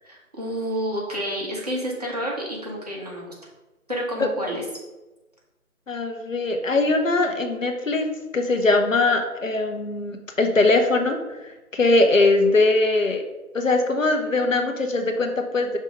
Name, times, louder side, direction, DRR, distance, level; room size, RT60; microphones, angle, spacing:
voice 1, 0.0-3.3 3.9-4.6, equal, 25° right, -4 dB, 0.9 m, -29 dB
voice 2, 5.9-8.1 8.3-11.2 11.7-13.2 13.5-15.8, left 2 dB, 60° left, 5 dB, 0.9 m, -21 dB
5.4 x 3.6 x 5.1 m, 1.1 s
figure-of-eight pair, 155°, 45 cm